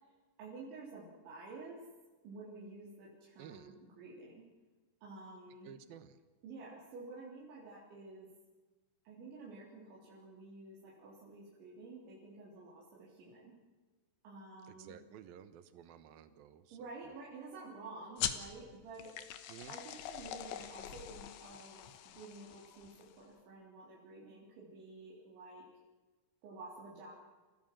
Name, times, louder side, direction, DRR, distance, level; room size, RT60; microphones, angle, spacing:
voice 1, 0.4-1.8 2.2-4.4 5.0-5.7 6.4-8.3 9.1-13.5 14.2-14.9 16.7-19.1 19.7-21.8 22.2-25.7 26.4-27.1, right 3 dB, 85° right, -6 dB, 6.1 m, -51 dB
voice 2, 3.4-3.8 5.6-6.2 14.6-17.1 19.5-19.8, right 9 dB, 65° right, 11 dB, 2.7 m, -54 dB
sound 1, 18.2-23.3, left 11 dB, 80° left, 3.5 m, -43 dB
29.0 x 16.0 x 7.7 m, 1.3 s
omnidirectional pair, 5.1 m